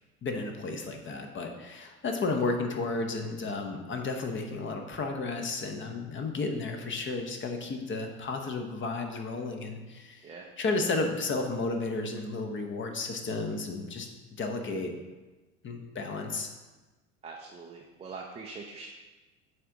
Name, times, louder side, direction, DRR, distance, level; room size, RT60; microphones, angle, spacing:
voice 1, 0.2-10.3 10.6-14.9 15.6-16.5, left 3 dB, 25° left, 4 dB, 0.8 m, -33 dB
voice 2, 17.2-18.9, right 4 dB, 15° right, -1 dB, 0.5 m, -43 dB
8.7 x 3.4 x 3.8 m, 1.2 s
figure-of-eight pair, 75°, 43 cm